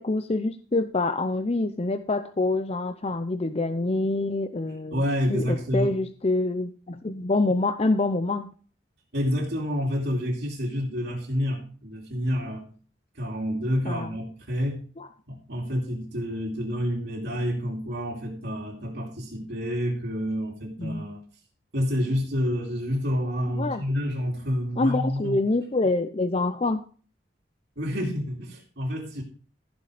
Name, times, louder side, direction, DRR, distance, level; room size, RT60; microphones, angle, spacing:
voice 1, 0.0-5.0 5.3-8.5 13.9-14.2 15.0-15.1 20.8-21.1 23.6-23.8 24.8-26.8, left 2 dB, 35° left, 9 dB, 0.6 m, -26 dB
voice 2, 4.9-6.0 9.1-12.7 13.1-14.8 15.3-21.2 21.7-25.4 27.8-29.2, equal, 65° right, -2 dB, 2.6 m, -28 dB
15.0 x 6.6 x 5.0 m, 0.40 s
head